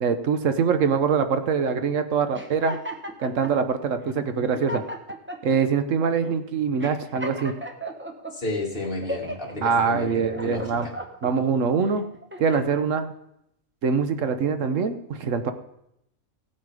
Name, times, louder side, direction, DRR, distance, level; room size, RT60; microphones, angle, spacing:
voice 1, 0.0-2.8 3.2-4.8 5.4-7.5 9.6-10.9 11.2-12.0 12.4-13.1 13.8-15.5, right 6 dB, 70° right, 9 dB, 1.2 m, -23 dB
sound 1, 2.3-3.6 4.2-4.3 4.5-5.6 6.2-6.3 6.8-8.3 8.8-9.5 10.0-11.3 11.9-12.9, equal, 10° right, 1.0 m, -36 dB
voice 2, 8.3-10.9, left 2 dB, 40° left, -2 dB, 2.5 m, -31 dB
16.0 x 8.6 x 4.8 m, 0.80 s
omnidirectional pair, 1.4 m